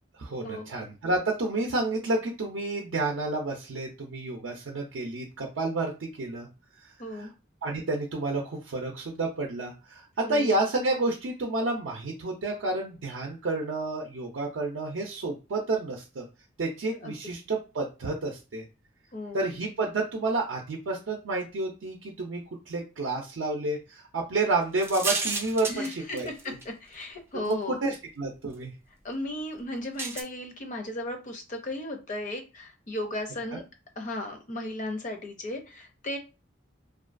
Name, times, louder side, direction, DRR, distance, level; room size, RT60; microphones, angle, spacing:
voice 1, 0.2-6.5 7.1-7.3 7.6-16.3 16.6-18.6 19.3-22.4 22.7-26.5 27.3-28.7 33.5-33.6, right 2 dB, 75° right, 0 dB, 0.5 m, -30 dB
voice 2, 7.0-7.3 10.2-10.5 17.0-17.2 19.1-19.4 25.7-27.8 29.0-33.6 34.0-36.2, left 1 dB, 40° left, 4 dB, 0.5 m, -35 dB
sound 1, 24.8-26.6 27.5-27.6 30.0-30.2, right 3 dB, 10° right, 0.3 m, -31 dB
2.4 x 2.2 x 2.5 m, 0.30 s
head